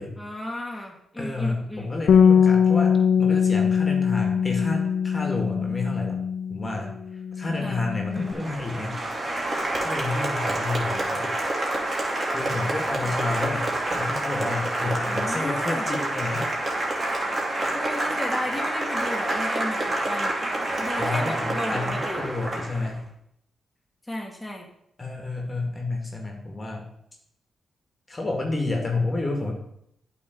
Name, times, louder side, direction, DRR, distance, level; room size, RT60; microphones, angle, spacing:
voice 1, 0.2-1.9 7.6-7.8 8.1-8.5 13.0-13.2 15.1-15.9 17.7-20.3 20.8-22.3 24.1-24.7, left 1 dB, 10° left, -1 dB, 1.8 m, -34 dB
voice 2, 1.2-6.2 6.5-6.9 7.4-9.0 9.8-11.4 12.3-16.5 20.4-20.6 21.0-23.0 25.0-26.9 28.1-29.5, left 2 dB, 30° left, 2 dB, 1.8 m, -30 dB
Bass guitar, 2.1-6.8 7.0-8.3, left 7 dB, 70° left, 0.5 m, -21 dB
Applause, 8.1-23.0, right 1 dB, 35° right, 2.4 m, -28 dB
8.6 x 3.7 x 6.6 m, 0.74 s
supercardioid pair, 50°, 0 cm